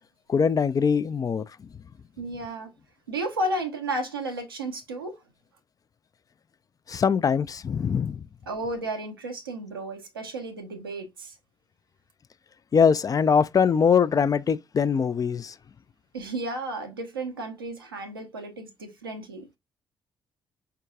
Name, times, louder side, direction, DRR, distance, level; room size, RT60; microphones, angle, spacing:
voice 1, 0.3-1.4 6.9-8.2 12.7-15.5, left 6 dB, 30° left, 0.4 m, -22 dB
voice 2, 2.2-2.7 3.1-5.2 8.5-11.4 16.1-19.4, right 1 dB, 85° right, 0.8 m, -33 dB
4.7 x 4.5 x 2.3 m
figure-of-eight pair, 45°, 12 cm